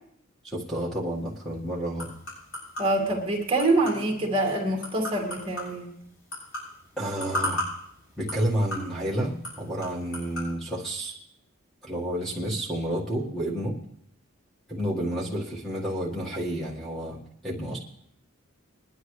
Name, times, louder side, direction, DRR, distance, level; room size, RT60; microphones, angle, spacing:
voice 1, 0.4-2.1 7.0-7.7 8.2-11.1 11.8-13.8 14.7-17.2 17.4-17.8, right 1 dB, ahead, -5 dB, 1.6 m, -30 dB
sound 1, 1.1-10.5, left 1 dB, 70° left, 7.0 m, -38 dB
voice 2, 2.8-5.9, right 2 dB, 25° right, 1 dB, 2.0 m, -25 dB
21.5 x 11.0 x 3.2 m, 0.70 s
head